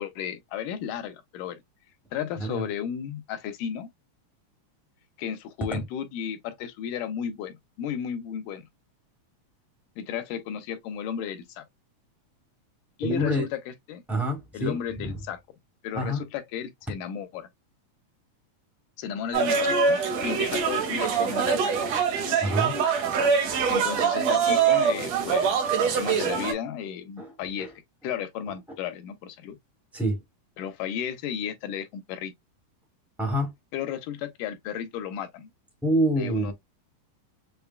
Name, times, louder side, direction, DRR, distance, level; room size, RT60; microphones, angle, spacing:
voice 1, 0.0-1.6 2.1-3.9 5.2-8.6 10.0-11.6 13.0-13.6 13.9-14.0 14.5-15.4 15.8-17.5 19.0-21.7 23.7-27.7 28.0-29.6 30.6-32.3 33.7-35.5 36.2-36.5, left 8 dB, 80° left, 2.3 m, -34 dB
voice 2, 13.0-13.5 14.1-15.2 15.9-16.2 22.4-22.7 27.2-27.3 27.6-27.7 29.9-30.2 33.2-33.5 35.8-36.5, equal, ahead, 0.8 m, -27 dB
sound 1, 19.3-26.5, right 6 dB, 70° right, 1.8 m, -24 dB
6.8 x 2.3 x 2.2 m
omnidirectional pair, 3.8 m